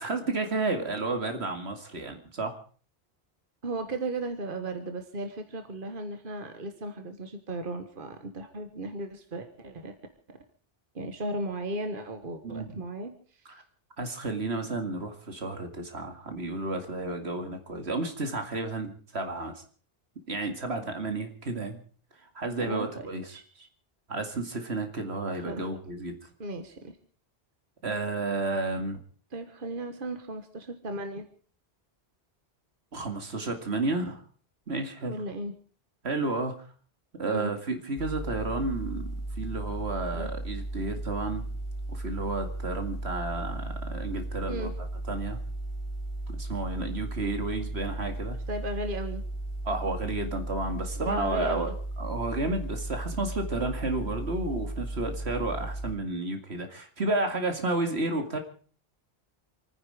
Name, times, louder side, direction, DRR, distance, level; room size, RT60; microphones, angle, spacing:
voice 1, 0.0-2.5 12.4-12.8 14.0-19.6 20.3-21.8 22.3-23.7 24.1-26.2 27.8-29.0 32.9-34.2 34.7-35.1 36.0-36.6 37.2-41.5 41.9-44.7 45.1-45.4 46.3-48.4 49.6-58.4, right 2 dB, 85° right, 6 dB, 2.5 m, -32 dB
voice 2, 3.6-9.9 10.3-10.4 10.9-13.1 22.6-23.4 25.3-25.7 26.4-27.0 29.3-31.3 35.0-35.5 37.2-37.5 40.1-40.3 44.5-44.7 48.5-49.2 51.0-51.7, right 1 dB, 55° right, 7 dB, 1.7 m, -36 dB
sound 1, 38.0-55.9, right 1 dB, 30° left, 1.7 m, -35 dB
28.0 x 9.9 x 4.9 m, 0.42 s
omnidirectional pair, 1.1 m